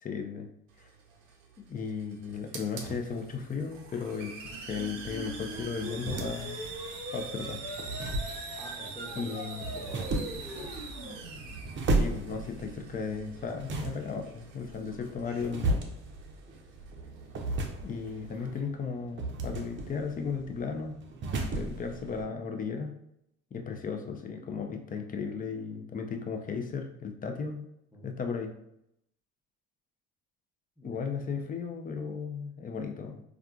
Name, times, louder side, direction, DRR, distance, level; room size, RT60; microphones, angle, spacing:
voice 1, 0.0-0.5 0.8-0.9 1.7-6.6 7.1-7.6 9.2-9.6 11.9-15.8 17.8-21.0 21.5-23.0 23.5-27.6 28.0-28.5 30.8-33.2, left 5 dB, 25° left, 4 dB, 0.5 m, -35 dB
Hiss, 0.7-18.6, right 5 dB, 80° right, 0.6 m, -46 dB
sound 1, 4.4-12.0, equal, 65° left, 1.4 m, -42 dB
sound 2, 5.5-22.2, right 2 dB, 30° right, 0.6 m, -35 dB
voice 2, 8.6-10.9 16.5-16.6 27.9-28.1 30.8-31.0, equal, ahead, -2 dB, 0.9 m, -47 dB
3.5 x 2.4 x 2.3 m, 0.78 s
hypercardioid pair, 60°, 37 cm